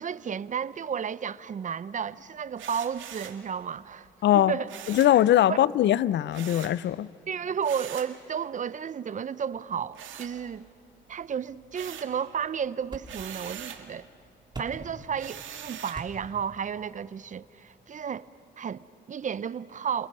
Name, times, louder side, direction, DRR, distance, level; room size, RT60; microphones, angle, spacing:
voice 1, 0.0-4.1 4.3-4.7 5.5-5.6 7.3-10.7 11.1-14.1 14.6-18.3 18.6-20.1, right 7 dB, 40° right, 0.6 m, -32 dB
sound 1, 2.6-3.4 4.7-5.2 6.3-6.8 7.6-8.2 9.9-10.8 11.2-12.2 13.0-13.9 15.2-16.1, right 9 dB, 75° right, 2.0 m, -42 dB
voice 2, 4.2-4.5 4.9-7.1, left 12 dB, 65° left, 0.5 m, -21 dB
sound 2, 11.2-18.3, right 2 dB, 20° right, 3.3 m, -48 dB
28.0 x 28.0 x 5.5 m
cardioid pair, 90°, 20 cm